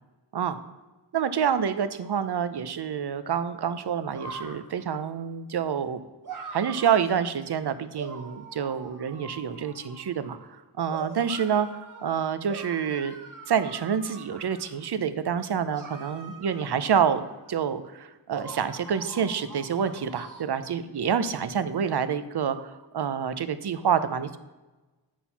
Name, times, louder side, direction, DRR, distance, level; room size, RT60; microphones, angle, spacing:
voice 1, 1.1-6.0 6.5-13.1 13.5-24.4, right 7 dB, 65° right, 12 dB, 0.6 m, -27 dB
sound 1, 3.8-4.6 6.2-7.1 7.9-10.5 10.9-12.0 12.5-14.9 15.7-17.6 18.3-20.4, right 4 dB, 50° right, 1.0 m, -43 dB
9.0 x 4.3 x 5.6 m, 1.2 s
wide cardioid pair, 90°, 43 cm